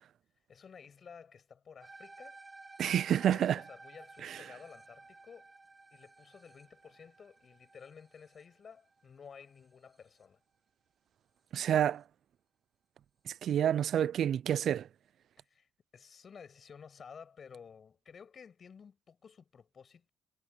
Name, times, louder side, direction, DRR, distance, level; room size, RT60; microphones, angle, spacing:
voice 1, 0.5-2.4 2.9-5.5 5.9-10.4 15.5-15.7 15.9-20.1, left 6 dB, 45° left, 6.2 m, -53 dB
sound 1, 1.8-10.2, right 3 dB, 25° right, 5.1 m, -55 dB
voice 2, 2.8-3.6 4.2-4.4 11.5-12.0 13.3-14.9, right 10 dB, 65° right, 0.4 m, -29 dB
cardioid pair, 90°, 0 cm